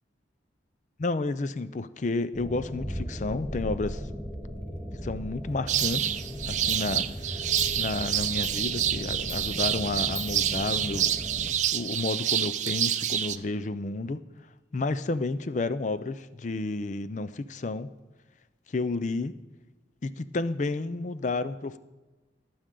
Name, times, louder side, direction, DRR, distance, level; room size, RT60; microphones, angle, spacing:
voice 1, 1.0-4.0 5.0-6.2 6.5-7.1 7.8-11.1 11.7-14.2 14.7-17.9 18.7-19.4 20.0-21.8, left 3 dB, 40° left, 14 dB, 0.4 m, -31 dB
sound 1, 2.3-11.5, equal, 5° left, 1.0 m, -37 dB
Clock, 5.5-5.6 5.8-11.4, left 8 dB, 70° left, 1.0 m, -45 dB
sound 2, 5.7-13.4, right 10 dB, 40° right, 0.4 m, -28 dB
19.0 x 8.7 x 3.8 m, 1.2 s
head